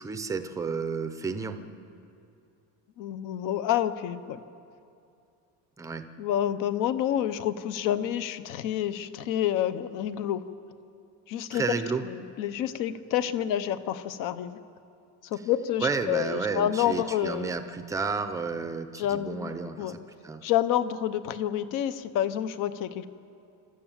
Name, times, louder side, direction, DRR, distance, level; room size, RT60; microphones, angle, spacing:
voice 1, 0.0-1.6 5.8-6.0 11.5-12.0 15.8-20.4, right 4 dB, 10° right, 9 dB, 0.6 m, -31 dB
voice 2, 3.0-4.4 6.2-10.4 11.3-11.6 12.0-14.6 15.2-17.5 19.0-19.5 19.8-20.0 20.4-23.1, left 11 dB, 55° left, 13 dB, 0.9 m, -28 dB
26.5 x 13.0 x 7.4 m, 2.5 s
cardioid pair, 175°, 39 cm